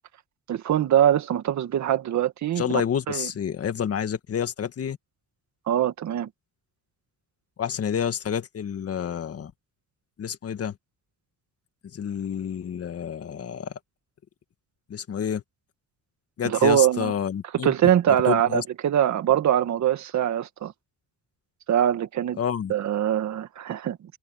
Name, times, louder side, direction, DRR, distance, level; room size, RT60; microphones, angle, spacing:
voice 1, 0.5-2.7 3.1-3.3 5.7-6.3 16.4-17.1 17.5-20.7 21.7-22.4 22.7-24.0, right 10 dB, 65° right, 2.0 m, -23 dB
voice 2, 2.6-5.0 7.6-9.5 10.2-10.7 11.9-13.7 14.9-15.4 16.4-17.7 18.3-18.6 22.4-22.7, left 8 dB, 50° left, 1.9 m, -28 dB
cardioid pair, 90°, 30 cm